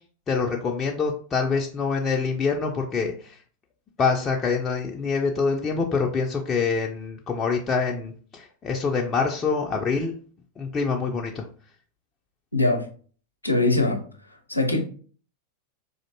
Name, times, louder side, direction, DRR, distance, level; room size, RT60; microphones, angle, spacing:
voice 1, 0.3-3.4 4.0-10.1 10.6-11.5, left 5 dB, 25° left, 0.4 m, -25 dB
voice 2, 12.5-12.9 13.4-14.0 14.5-14.8, left 2 dB, 85° left, 0.5 m, -21 dB
4.2 x 2.5 x 2.7 m
figure-of-eight pair, 90°, 0 cm